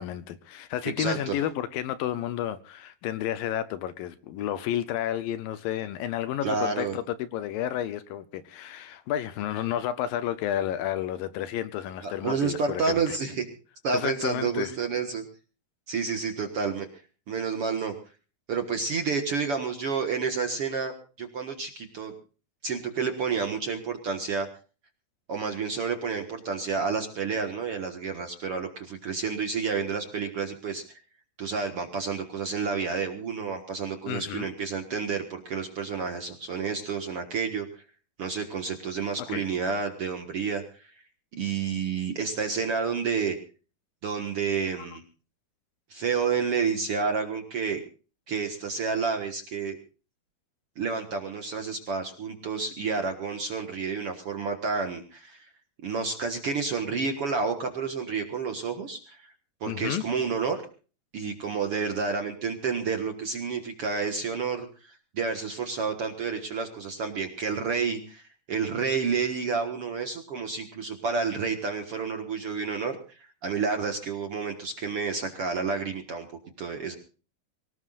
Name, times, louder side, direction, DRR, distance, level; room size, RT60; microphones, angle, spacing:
voice 1, 0.0-13.2 13.9-14.7 34.1-34.5 39.3-39.4 59.7-60.0, left 11 dB, 75° left, 2.4 m, -31 dB
voice 2, 1.0-1.4 6.4-7.0 12.0-13.5 13.8-15.2 15.9-16.9 17.3-17.9 18.5-22.1 22.6-24.5 25.3-30.8 31.4-37.7 38.2-40.9 41.4-43.4 44.0-45.0 45.9-47.8 48.3-49.8 50.8-55.5 55.8-59.3 59.6-60.6 61.1-76.3 76.6-76.9, right 5 dB, 55° right, 1.8 m, -30 dB
24.0 x 18.5 x 2.5 m
omnidirectional pair, 4.4 m